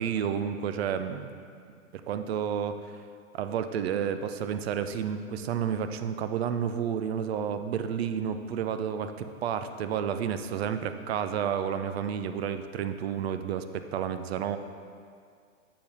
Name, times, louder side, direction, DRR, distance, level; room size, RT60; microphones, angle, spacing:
voice 1, 0.0-1.4 2.1-3.0 3.3-14.6, right 8 dB, 50° right, 9 dB, 0.5 m, -31 dB
7.5 x 6.8 x 3.4 m, 2.2 s
hypercardioid pair, 150°, 40 cm